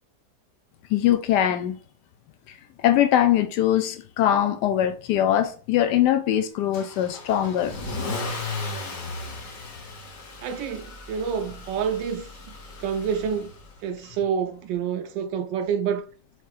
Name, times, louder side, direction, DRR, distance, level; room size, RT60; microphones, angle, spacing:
voice 1, 0.9-1.8 2.8-7.7, left 11 dB, 75° left, 1.1 m, -22 dB
Car / Engine starting / Accelerating revving vroom, 6.7-13.8, left 3 dB, 50° left, 1.4 m, -36 dB
voice 2, 10.4-12.3 12.8-13.5 13.8-16.0, right 7 dB, 80° right, 1.3 m, -28 dB
6.5 x 2.9 x 2.4 m
omnidirectional pair, 2.0 m